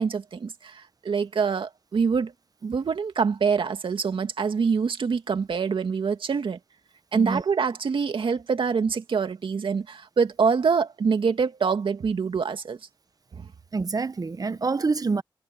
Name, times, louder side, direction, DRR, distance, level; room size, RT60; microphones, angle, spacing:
voice 1, 0.0-2.3 2.6-6.6 7.1-12.8 13.3-13.5, right 5 dB, 70° right, 2.2 m, -25 dB
voice 2, 13.7-15.2, right 4 dB, 45° right, 0.9 m, -26 dB
cardioid pair, 55°, 9 cm